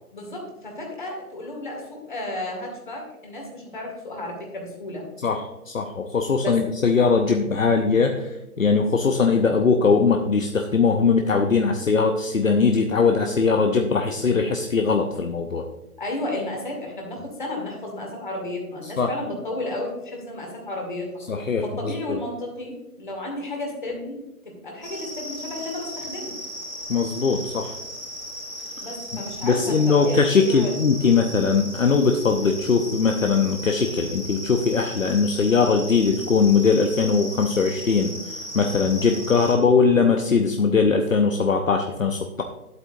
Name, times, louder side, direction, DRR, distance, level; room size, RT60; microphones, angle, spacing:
voice 1, 0.1-5.1 6.4-6.6 16.0-21.1 21.4-24.2 24.4-26.3 28.8-30.8, left 1 dB, 30° left, 0 dB, 2.2 m, -33 dB
voice 2, 5.2-8.3 8.6-15.6 19.0-19.1 21.3-22.2 26.9-27.8 29.1-38.1 38.5-42.4, left 5 dB, 60° left, 4 dB, 0.9 m, -20 dB
sound 1, 24.8-39.5, equal, 5° left, 1.5 m, -36 dB
11.5 x 7.9 x 2.7 m, 0.96 s
hypercardioid pair, 180°, 45 cm